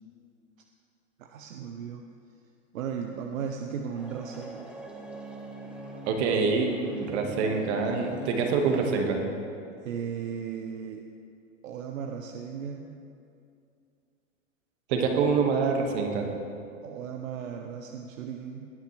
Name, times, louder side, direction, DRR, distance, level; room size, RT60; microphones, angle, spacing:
voice 1, 1.2-2.1 2.7-4.7 9.8-11.1 11.6-13.0 16.8-18.7, right 7 dB, 80° right, 3 dB, 0.8 m, -36 dB
sound 1, 4.0-9.0, right 1 dB, 5° right, 0.9 m, -42 dB
voice 2, 6.1-6.7 7.0-9.2 14.9-16.3, right 5 dB, 55° right, 3 dB, 1.7 m, -25 dB
20.0 x 6.7 x 3.3 m, 2.5 s
hypercardioid pair, 120°, 39 cm